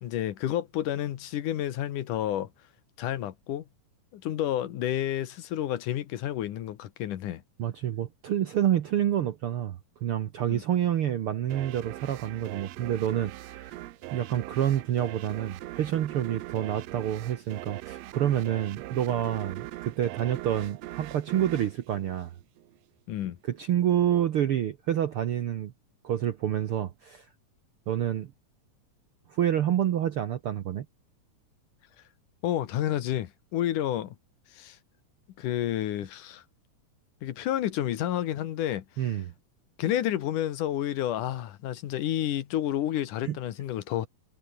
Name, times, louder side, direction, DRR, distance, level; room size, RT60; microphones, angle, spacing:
voice 1, 0.0-2.5 3.0-3.6 4.1-7.4 10.5-10.6 23.1-23.4 32.4-34.2 34.5-34.8 35.4-36.4 37.2-38.8 39.8-44.1, left 12 dB, 75° left, 2.8 m, -30 dB
voice 2, 7.6-13.7 14.1-22.3 23.4-25.7 26.0-27.3 27.9-28.3 29.3-30.9 39.0-39.3 43.2-43.4, right 10 dB, 65° right, 1.4 m, -28 dB
sound 1, 11.5-22.8, right 17 dB, 85° right, 1.4 m, -41 dB
omnidirectional pair, 3.8 m